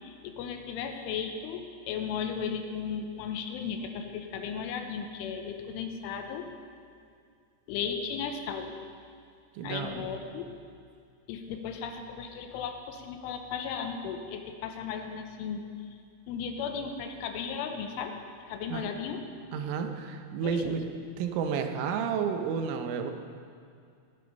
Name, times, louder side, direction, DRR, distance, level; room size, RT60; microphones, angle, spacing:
voice 1, 0.0-6.5 7.7-8.8 9.6-10.5 11.3-15.6 16.3-18.2 18.5-19.2 20.4-20.8, left 6 dB, 80° left, 5 dB, 3.4 m, -35 dB
voice 2, 9.6-10.2 18.7-18.9 19.5-20.9 21.2-23.1, right 6 dB, 85° right, 5 dB, 3.6 m, -31 dB
17.0 x 12.0 x 5.4 m, 2.3 s
omnidirectional pair, 5.6 m